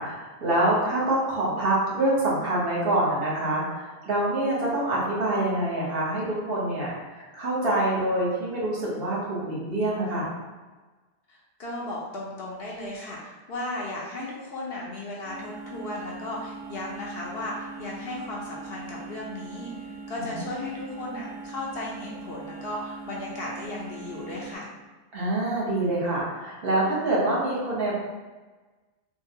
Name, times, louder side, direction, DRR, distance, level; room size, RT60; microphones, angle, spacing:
voice 1, 0.0-10.4 20.2-20.3 25.1-27.9, right 1 dB, 65° right, -6 dB, 1.1 m, -26 dB
voice 2, 11.3-24.7, left 2 dB, 70° left, -4 dB, 0.9 m, -35 dB
sound 1, 15.2-24.5, right 4 dB, 40° right, 0.4 m, -41 dB
3.7 x 2.1 x 2.7 m, 1.3 s
omnidirectional pair, 1.1 m